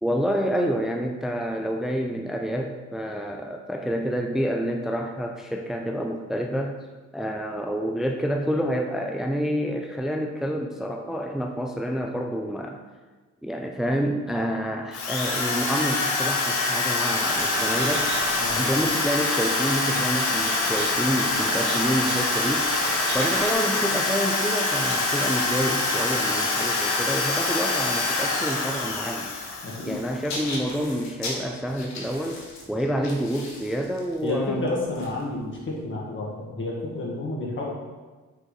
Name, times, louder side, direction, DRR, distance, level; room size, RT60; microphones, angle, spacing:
voice 1, 0.0-6.8 7.1-12.8 13.4-18.1 18.5-22.7 23.1-29.3 29.8-34.7, equal, ahead, 2 dB, 0.5 m, -28 dB
Drill, 14.9-30.1, left 3 dB, 80° left, 1.3 m, -25 dB
sound 1, 17.0-23.5, right 5 dB, 75° right, 0.9 m, -34 dB
sound 2, 24.8-35.8, left 2 dB, 65° left, 1.5 m, -39 dB
voice 2, 29.6-30.0 34.2-37.6, left 2 dB, 40° left, -4 dB, 2.0 m, -30 dB
6.2 x 4.6 x 4.0 m, 1.3 s
cardioid pair, 90°, 30 cm